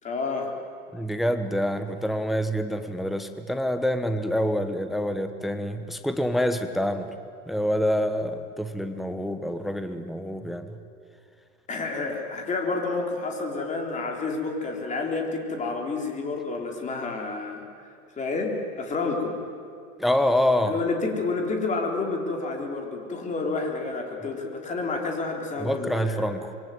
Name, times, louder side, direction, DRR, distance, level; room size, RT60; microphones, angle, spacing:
voice 1, 0.0-0.5 11.7-17.9 18.2-19.4 20.6-26.3, left 3 dB, 15° left, 1 dB, 3.9 m, -29 dB
voice 2, 0.9-7.1 7.5-10.8 20.0-20.8 25.6-26.5, equal, ahead, 8 dB, 1.0 m, -26 dB
26.5 x 22.5 x 9.5 m, 2.3 s
supercardioid pair, 145°, 42 cm